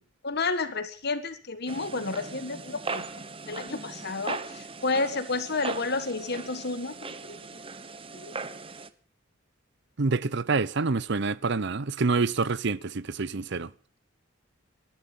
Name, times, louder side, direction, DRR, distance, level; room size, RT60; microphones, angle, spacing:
voice 1, 0.2-3.0 3.5-7.4 8.1-8.3, left 3 dB, 55° left, 1.7 m, -31 dB
sound 1, 1.7-8.9, right 4 dB, 30° right, 1.0 m, -39 dB
voice 2, 10.0-13.7, right 4 dB, 60° right, 0.7 m, -27 dB
20.0 x 13.5 x 5.4 m
head